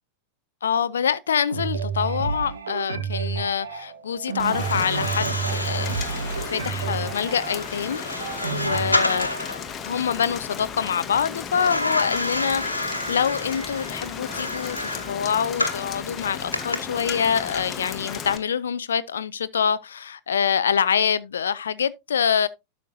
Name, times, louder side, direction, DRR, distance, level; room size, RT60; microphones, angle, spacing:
voice 1, 0.6-6.0 6.3-8.0 8.5-9.6 9.8-22.5, left 7 dB, 65° left, 0.4 m, -25 dB
sound 1, 1.5-9.4, right 6 dB, 70° right, 1.3 m, -30 dB
Rain, 4.4-18.4, left 7 dB, 25° left, 1.3 m, -35 dB
sound 2, 4.5-9.6 11.6-15.9 16.5-16.8, left 2 dB, 85° left, 1.2 m, -29 dB
12.0 x 6.3 x 2.7 m
figure-of-eight pair, 90°, 0 cm